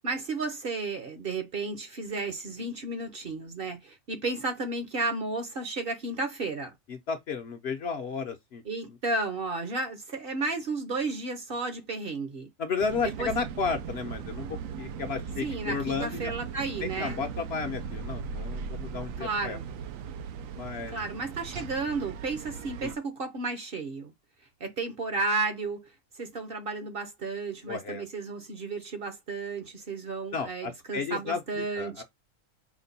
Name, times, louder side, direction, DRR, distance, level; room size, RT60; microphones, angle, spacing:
voice 1, 0.0-6.7 8.6-12.5 13.0-13.3 15.4-17.2 19.2-19.7 20.9-24.1 24.6-32.0, right 3 dB, 50° right, 0.9 m, -33 dB
voice 2, 6.9-8.6 12.6-16.3 16.8-19.6 20.6-21.0 22.8-22.9 27.7-28.0 30.3-32.0, left 5 dB, 55° left, 0.8 m, -33 dB
sound 1, 12.8-23.0, right 6 dB, 80° right, 1.0 m, -38 dB
5.0 x 2.2 x 4.0 m
omnidirectional pair, 1.4 m